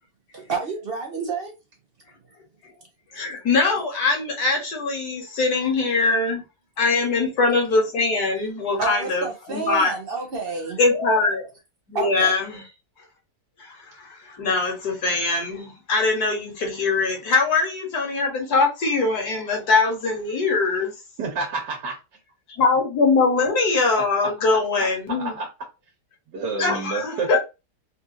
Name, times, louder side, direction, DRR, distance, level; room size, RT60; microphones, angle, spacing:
voice 1, 0.3-1.5 8.8-10.8 11.9-12.3, right 4 dB, 55° right, 0.6 m, -29 dB
voice 2, 3.1-6.4 6.8-9.9 10.8-11.4 11.9-12.6 13.6-20.9 22.6-25.3 26.6-27.4, left 3 dB, 65° left, 1.7 m, -22 dB
voice 3, 21.2-22.0 24.2-24.3 25.1-25.5 26.3-27.4, right 3 dB, 85° right, 1.6 m, -29 dB
3.9 x 2.4 x 2.7 m
omnidirectional pair, 1.8 m